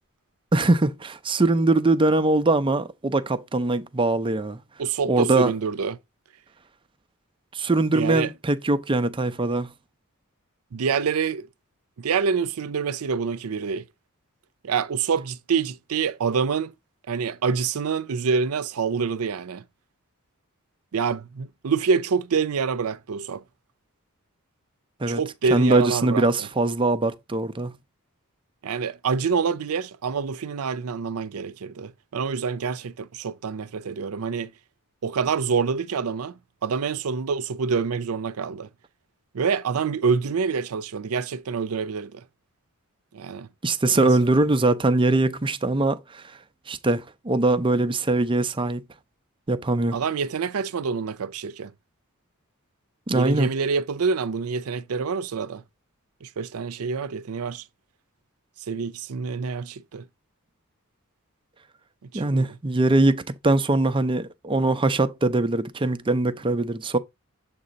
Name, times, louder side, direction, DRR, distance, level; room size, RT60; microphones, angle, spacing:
voice 1, 0.5-4.6 5.1-5.5 7.5-9.7 25.0-25.2 25.5-27.8 43.6-46.2 46.7-48.8 49.5-50.0 53.1-53.5 62.1-67.0, right 2 dB, 25° right, 0.5 m, -22 dB
voice 2, 4.8-6.0 7.9-8.3 10.7-11.5 12.0-13.8 14.6-16.7 17.1-19.6 20.9-23.4 25.1-26.5 28.6-34.5 35.0-38.7 39.3-42.2 43.1-43.5 43.9-44.1 49.9-51.7 53.1-55.6 56.2-57.6 58.7-60.0 62.1-62.6, right 5 dB, 85° right, 0.5 m, -26 dB
7.3 x 2.8 x 5.1 m
head